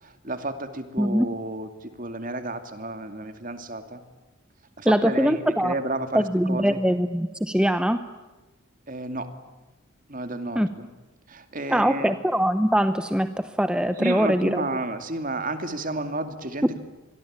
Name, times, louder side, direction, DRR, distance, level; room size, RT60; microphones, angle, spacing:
voice 1, 0.0-4.0 4.8-6.8 8.9-9.3 10.1-10.9 11.3-12.1 14.0-16.8, right 2 dB, 40° right, 9 dB, 2.5 m, -32 dB
voice 2, 4.9-5.7 6.1-8.0 10.6-10.7 11.7-14.6, equal, 5° right, 10 dB, 0.8 m, -22 dB
26.5 x 22.0 x 8.8 m, 1.2 s
head